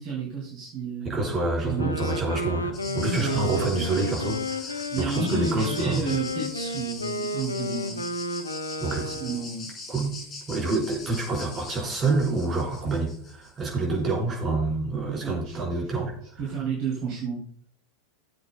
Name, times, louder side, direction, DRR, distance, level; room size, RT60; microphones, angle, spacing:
voice 1, 0.0-1.2 1.6-2.1 2.9-3.5 4.9-8.0 9.0-9.7 15.1-15.6 16.4-17.4, right 4 dB, 40° right, -4 dB, 2.7 m, -31 dB
voice 2, 1.0-6.2 8.8-9.1 9.9-10.2 10.5-16.4, right 3 dB, 25° right, -2 dB, 4.2 m, -27 dB
Wind instrument woodwind instrument, 1.7-9.6, left 1 dB, 80° left, 0.9 m, -32 dB
sound 1, 2.7-13.7, left 3 dB, 30° left, 2.7 m, -41 dB
18.0 x 7.9 x 2.2 m, 0.63 s
figure-of-eight pair, 90°, 0 cm